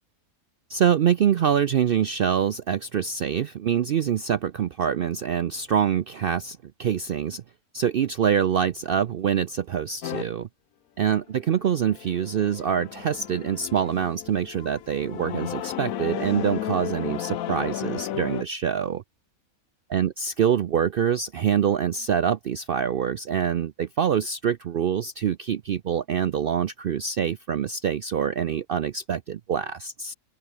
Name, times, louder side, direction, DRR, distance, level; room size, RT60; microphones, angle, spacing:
voice 1, 0.7-7.4 7.7-10.5 11.0-19.0 19.9-30.1, right 8 dB, 70° right, 0.5 m, -25 dB
sound 1, 10.0-10.2 11.4-18.4, left 12 dB, 70° left, 1.1 m, -34 dB
omnidirectional pair, 1.6 m